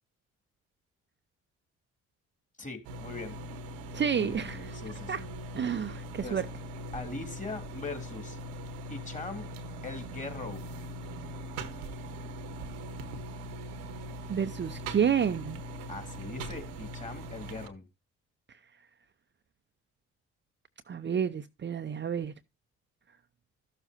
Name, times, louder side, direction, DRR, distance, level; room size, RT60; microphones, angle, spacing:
voice 1, 2.6-3.4 4.1-5.3 6.2-6.5 6.9-8.4 8.9-9.5 9.8-10.7 15.9-17.9, left 3 dB, 20° left, 2.8 m, -41 dB
sound 1, 2.8-17.7, right 1 dB, 85° right, 1.1 m, -41 dB
voice 2, 3.9-4.8 5.1-5.2 5.5-6.5 14.3-15.6 20.9-22.3, right 8 dB, 35° right, 0.6 m, -30 dB
13.0 x 7.1 x 2.7 m
hypercardioid pair, 50°, 33 cm